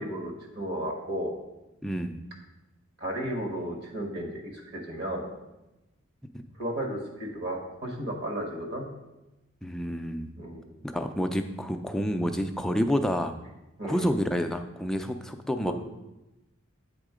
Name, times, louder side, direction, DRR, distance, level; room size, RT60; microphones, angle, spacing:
voice 1, 0.0-1.3 3.0-5.3 6.6-8.9 10.4-10.6 13.8-14.1 15.7-15.8, right 1 dB, 50° right, 1 dB, 1.4 m, -34 dB
voice 2, 1.8-2.2 9.6-10.3 10.8-13.3 13.8-15.7, equal, ahead, 5 dB, 0.3 m, -29 dB
8.1 x 3.6 x 4.9 m, 0.98 s
head